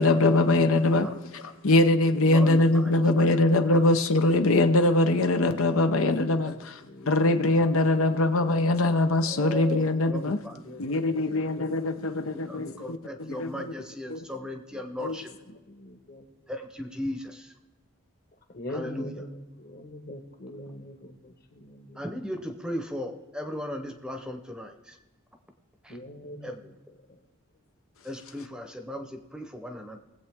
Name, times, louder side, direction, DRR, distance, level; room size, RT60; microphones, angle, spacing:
voice 1, 0.0-6.5 7.1-10.4 10.8-13.0 13.4-13.5 14.1-14.2 15.0-15.2, left 2 dB, 80° left, 0.8 m, -22 dB
voice 2, 2.3-3.4 3.7-3.9 6.4-6.5 7.0-7.1 9.2-10.6 12.3-15.3 16.5-17.5 18.7-19.1 21.9-25.0 25.8-26.0 26.4-26.7 28.0-30.0, equal, 5° right, 0.8 m, -37 dB
voice 3, 5.8-8.2 10.5-14.0 14.7-14.8 15.2-15.3 15.7-16.3 18.5-22.0 25.9-26.5 27.0-27.2, left 1 dB, 45° left, 1.4 m, -44 dB
20.0 x 8.0 x 3.6 m
head